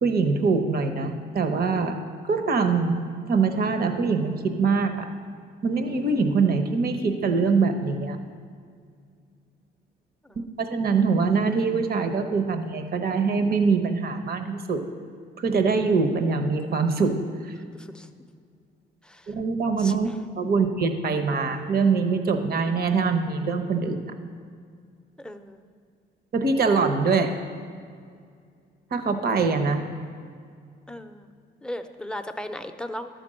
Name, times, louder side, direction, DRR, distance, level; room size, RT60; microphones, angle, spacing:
voice 1, 0.0-2.0 2.3-3.0 3.3-5.1 5.6-8.2 10.4-14.8 15.4-17.2 17.5-17.6 19.3-20.1 20.4-24.1 26.3-27.3 28.9-29.8, right 4 dB, 50° right, 7 dB, 1.0 m, -23 dB
voice 2, 17.7-18.1 19.1-19.3 19.8-20.2 25.2-25.6 30.9-31.3 31.6-33.1, left 1 dB, 5° left, 7 dB, 0.6 m, -37 dB
11.5 x 5.2 x 7.6 m, 2.2 s
cardioid pair, 90°, 20 cm